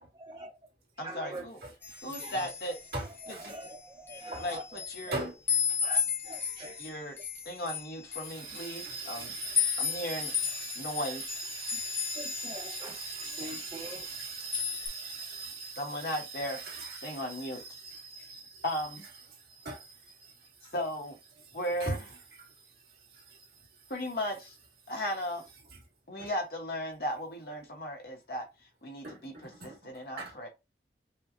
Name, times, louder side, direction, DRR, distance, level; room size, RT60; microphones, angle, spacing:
voice 1, 0.1-0.6 1.0-1.5 2.2-2.5 3.2-5.2 5.8-6.8 12.2-14.1, right 1 dB, 25° right, 0.4 m, -44 dB
voice 2, 1.0-1.6 2.0-2.8 3.3-3.5 4.4-5.3 6.8-7.2 7.4-9.3 9.8-10.3 10.7-11.2 15.8-16.6 17.0-17.6 18.2-19.1 20.7-21.2 21.5-22.1 23.9-24.6 24.9-25.4 26.1-28.5 28.8-30.5, equal, 60° left, 1.1 m, -36 dB
sound 1, 1.8-3.7 4.1-5.1 5.5-12.9 13.2-14.2 14.5-14.9, left 7 dB, 15° left, 0.7 m, -34 dB
voice 3, 8.3-18.7 19.5-19.9 20.2-20.3 21.8-22.0 23.3-23.4 26.2-26.3 29.0-29.2 29.5-29.9 30.2-30.3, right 3 dB, 60° right, 1.9 m, -40 dB
5.5 x 2.2 x 2.6 m
head